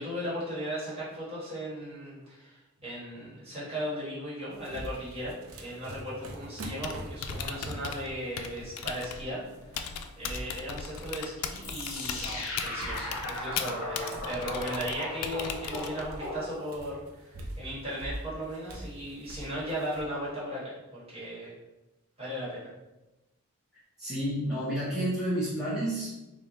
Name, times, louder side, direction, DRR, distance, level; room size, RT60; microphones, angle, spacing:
voice 1, 0.0-9.4 9.7-21.5 22.2-22.7, equal, 25° right, -9 dB, 1.5 m, -37 dB
sound 1, 4.5-9.2 9.5-11.3 11.6-13.8 14.1-20.0, right 1 dB, 65° right, 0.5 m, -44 dB
Typing, 6.7-16.3, left 7 dB, 90° left, 0.3 m, -39 dB
sound 2, 11.6-16.9, left 1 dB, 60° left, 0.8 m, -37 dB
voice 2, 24.0-26.1, right 1 dB, ahead, -13 dB, 0.9 m, -30 dB
3.3 x 2.3 x 4.0 m, 1.0 s
head